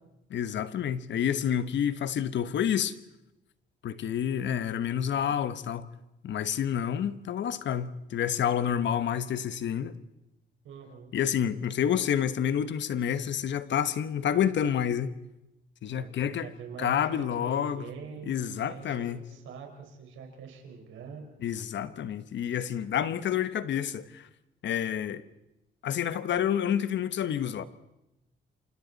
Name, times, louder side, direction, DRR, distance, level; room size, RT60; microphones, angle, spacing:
voice 1, 0.3-2.9 3.8-5.9 6.2-10.0 11.1-15.1 15.8-16.5 16.8-17.9 18.3-19.2 21.4-24.3 24.6-25.2 25.8-27.6, left 9 dB, 65° left, 1.2 m, -29 dB
voice 2, 10.6-11.1 15.9-21.3, right 5 dB, 80° right, 4.8 m, -44 dB
29.0 x 27.0 x 4.1 m
cardioid pair, 90°, 20 cm